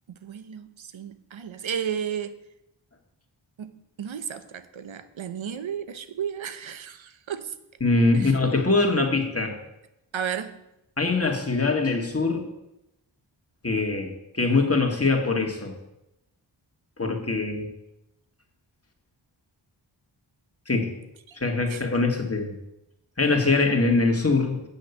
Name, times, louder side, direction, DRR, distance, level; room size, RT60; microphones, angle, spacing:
voice 1, 0.1-2.3 3.6-3.7 4.0-7.6 8.1-8.3 10.1-10.6 21.3-21.4 21.7-21.8, right 8 dB, 75° right, 12 dB, 0.8 m, -33 dB
voice 2, 7.8-9.6 11.0-12.5 13.6-15.7 17.0-17.7 20.7-20.9 21.4-22.6 23.2-24.6, left 3 dB, 30° left, 2 dB, 1.9 m, -23 dB
8.3 x 6.2 x 7.1 m, 0.88 s
cardioid pair, 40°, 47 cm